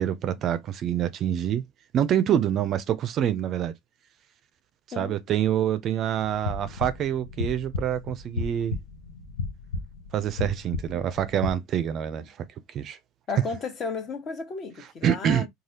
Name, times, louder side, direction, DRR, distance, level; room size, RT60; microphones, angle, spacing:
voice 1, 0.0-1.6 1.9-3.7 5.0-8.8 10.1-12.4 12.7-13.0 15.0-15.5, right 10 dB, 45° right, 0.4 m, -26 dB
sound 1, 6.2-11.5, left 4 dB, 85° left, 0.7 m, -34 dB
voice 2, 13.3-15.5, left 4 dB, 40° left, 1.1 m, -33 dB
3.3 x 2.3 x 2.7 m
hypercardioid pair, 90°, 0 cm